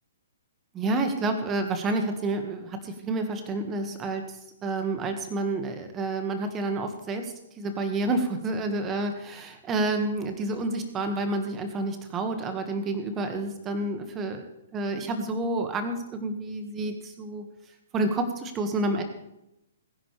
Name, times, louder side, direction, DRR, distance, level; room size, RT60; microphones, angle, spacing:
voice 1, 0.7-4.2 4.6-14.4 14.7-17.4 17.9-19.0, right 2 dB, 20° right, 6 dB, 1.9 m, -29 dB
21.0 x 10.5 x 3.5 m, 0.87 s
figure-of-eight pair, 120°, 0 cm